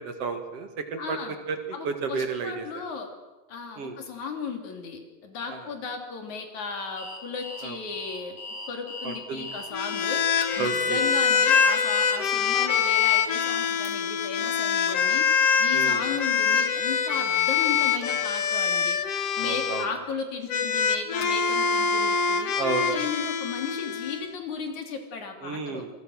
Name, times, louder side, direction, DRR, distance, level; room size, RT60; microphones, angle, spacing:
voice 1, 0.0-1.2 1.5-2.8 3.8-4.0 5.5-5.6 7.6-7.8 9.0-9.5 10.6-11.0 15.7-16.0 19.4-19.9 22.6-23.0 25.4-25.9, right 5 dB, 55° right, 7 dB, 2.8 m, -32 dB
voice 2, 1.0-1.4 1.7-3.1 3.5-8.4 8.7-10.2 10.6-15.3 15.6-19.0 19.4-22.5 22.9-25.8, left 5 dB, 75° left, 4 dB, 4.3 m, -35 dB
Alarm, 7.0-13.9, left 2 dB, 45° left, 4.8 m, -40 dB
sound 1, 9.7-19.9 20.5-24.3, left 7 dB, 60° left, 2.3 m, -24 dB
26.5 x 21.5 x 6.4 m, 1.2 s
omnidirectional pair, 3.3 m